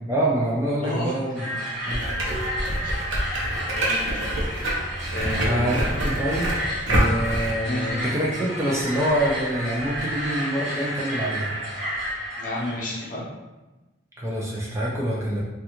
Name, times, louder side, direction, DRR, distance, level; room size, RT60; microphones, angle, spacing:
voice 1, 0.1-2.0 5.3-6.6 6.9-11.5 14.2-15.4, right 1 dB, 15° right, -5 dB, 0.4 m, -26 dB
voice 2, 0.8-1.1 2.8-3.0 3.6-4.1 5.1-5.9 7.7-7.9 12.4-13.3, left 1 dB, 40° left, -4 dB, 0.7 m, -31 dB
sound 1, 1.3-13.1, equal, 40° right, 0.8 m, -32 dB
sound 2, 1.9-7.5, right 1 dB, 70° right, 0.7 m, -26 dB
3.3 x 2.4 x 2.9 m, 1.1 s
head